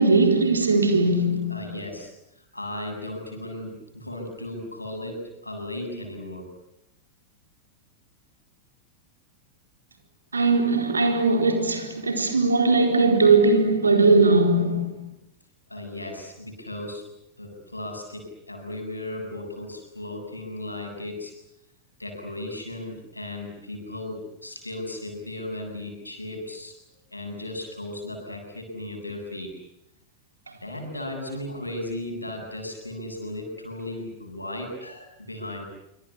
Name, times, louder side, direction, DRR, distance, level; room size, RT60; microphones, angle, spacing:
voice 1, 0.0-1.7 10.3-15.0, right 3 dB, 75° right, 4.2 m, -19 dB
voice 2, 1.5-6.5 15.7-17.0 17.4-21.3 22.0-26.7 27.1-29.5 30.6-35.6, left 1 dB, 85° left, 7.6 m, -36 dB
26.5 x 25.5 x 8.5 m
figure-of-eight pair, 90°, 0 cm